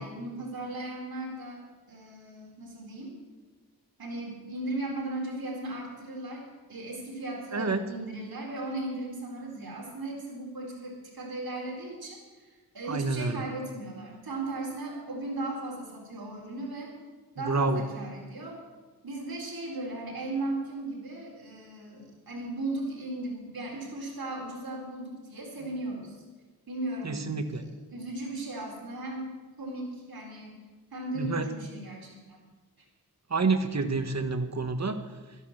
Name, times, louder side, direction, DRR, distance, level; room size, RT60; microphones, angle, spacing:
voice 1, 0.0-3.2 4.0-16.9 17.3-18.6 19.0-26.2 26.7-30.6 30.9-32.5 32.8-32.9, right 2 dB, 70° right, -1 dB, 4.3 m, -37 dB
voice 2, 7.5-7.9 12.9-13.4 17.4-17.8 27.0-27.7 31.1-31.5 33.3-35.0, right 3 dB, 45° right, 8 dB, 1.3 m, -28 dB
13.0 x 10.5 x 7.4 m, 1.3 s
wide cardioid pair, 80°, 37 cm